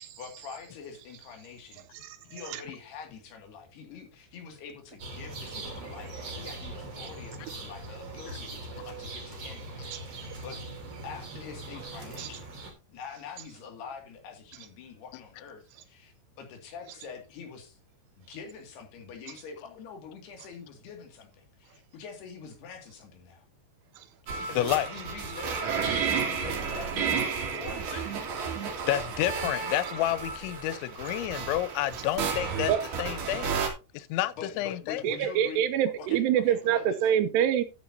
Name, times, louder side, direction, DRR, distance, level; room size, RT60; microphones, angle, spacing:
voice 1, 0.2-1.8 2.3-10.6 11.0-12.6 12.9-17.8 18.2-23.4 24.5-28.9 34.4-35.7 36.0-37.0, left 6 dB, 65° left, 4.3 m, -45 dB
sound 1, 5.0-12.7, right 2 dB, 35° right, 3.8 m, -41 dB
sound 2, 24.3-33.7, right 6 dB, 60° right, 4.4 m, -32 dB
voice 2, 24.6-24.9 28.9-32.7 33.0-33.5 33.9-35.0, left 14 dB, 85° left, 3.0 m, -29 dB
voice 3, 35.0-37.6, right 10 dB, 75° right, 2.7 m, -25 dB
13.0 x 9.4 x 2.8 m
omnidirectional pair, 5.2 m